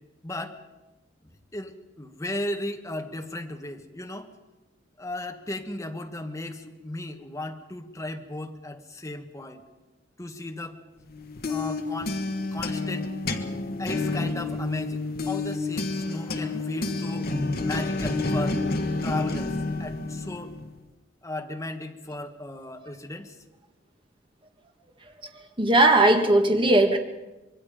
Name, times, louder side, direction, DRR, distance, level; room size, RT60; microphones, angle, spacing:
voice 1, 0.2-0.6 1.5-4.3 5.0-9.6 10.2-10.8 11.5-12.2 12.5-13.1 13.8-17.3 17.6-18.6 19.0-20.5 21.2-23.3, left 1 dB, 15° left, 4 dB, 1.4 m, -35 dB
sound 1, 11.1-20.8, left 3 dB, 50° left, 1.5 m, -29 dB
voice 2, 25.6-27.0, right 2 dB, 25° right, 5 dB, 1.7 m, -18 dB
25.5 x 22.0 x 5.1 m, 1.1 s
head